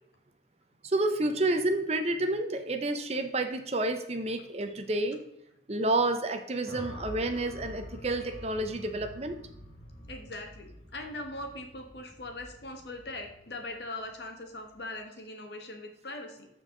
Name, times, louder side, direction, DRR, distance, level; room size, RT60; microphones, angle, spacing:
voice 1, 0.8-5.2 5.7-9.4, right 2 dB, 35° right, 7 dB, 0.8 m, -29 dB
sound 1, 6.6-14.9, equal, 30° left, 1.5 m, -47 dB
voice 2, 10.1-16.5, left 2 dB, 70° left, 4 dB, 1.5 m, -41 dB
14.0 x 4.7 x 3.8 m, 0.81 s
head